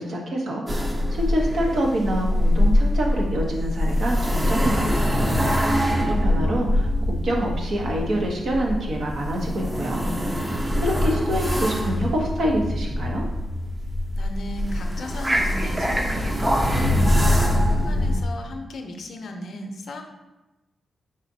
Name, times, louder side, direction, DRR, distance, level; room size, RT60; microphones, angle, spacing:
voice 1, 0.0-5.3 6.0-10.1 10.8-13.3, right 1 dB, 70° right, 0 dB, 0.9 m, -26 dB
sound 1, 0.7-18.2, left 1 dB, 20° right, 0.6 m, -23 dB
voice 2, 5.8-6.4 14.2-20.0, left 1 dB, 70° left, 4 dB, 0.6 m, -37 dB
4.9 x 4.0 x 2.7 m, 1.0 s
cardioid pair, 100°, 0 cm